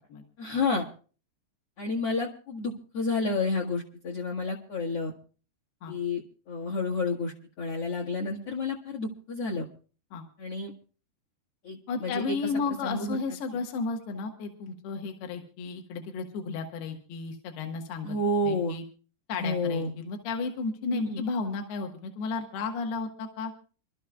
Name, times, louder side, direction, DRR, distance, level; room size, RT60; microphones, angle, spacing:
voice 1, 0.4-0.9 1.8-5.1 5.9-9.7 10.4-10.7 11.6-12.4 12.8-13.2 18.0-18.8 19.4-19.9 20.9-21.2, left 3 dB, 55° left, 1 dB, 1.7 m, -30 dB
voice 2, 11.9-18.2 18.4-18.8 19.3-23.5, left 4 dB, 75° left, 4 dB, 3.4 m, -33 dB
28.0 x 12.5 x 2.3 m, 0.38 s
omnidirectional pair, 4.7 m